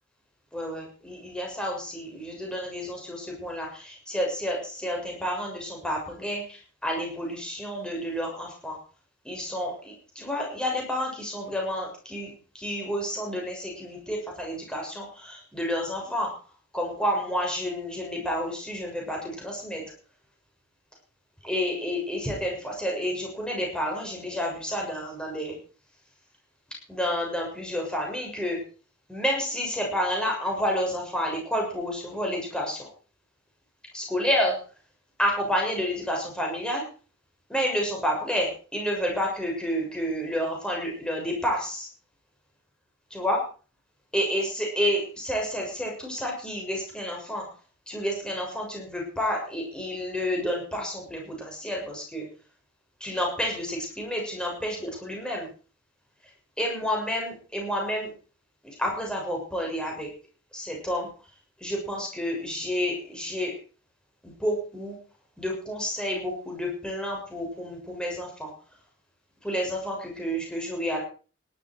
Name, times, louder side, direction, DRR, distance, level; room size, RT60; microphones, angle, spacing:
voice 1, 0.5-8.8 9.2-16.3 16.7-19.8 21.4-25.6 26.9-28.6 29.1-32.9 33.9-34.6 35.2-36.8 37.5-41.9 43.1-43.4 44.1-47.5 47.9-52.3 53.0-55.5 56.6-58.1 58.6-60.1 60.5-61.1 61.6-63.6 64.2-65.0 65.4-68.5 69.4-71.0, equal, 5° left, -1 dB, 6.8 m, -30 dB
18.0 x 12.0 x 4.7 m, 0.39 s
head